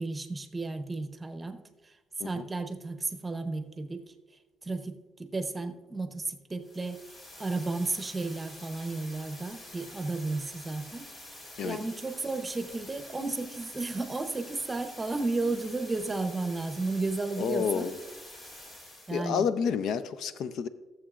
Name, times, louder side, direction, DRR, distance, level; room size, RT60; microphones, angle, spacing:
voice 1, 0.0-1.9 2.2-4.0 4.6-7.0 7.4-11.1 11.6-17.9 19.1-19.5, right 3 dB, 20° right, 8 dB, 0.8 m, -33 dB
sound 1, 6.6-19.3, left 1 dB, 35° left, 2.5 m, -47 dB
voice 2, 17.4-17.9 19.1-20.7, left 7 dB, 70° left, 12 dB, 0.5 m, -29 dB
15.5 x 7.3 x 2.5 m, 1.1 s
cardioid pair, 110°, 0 cm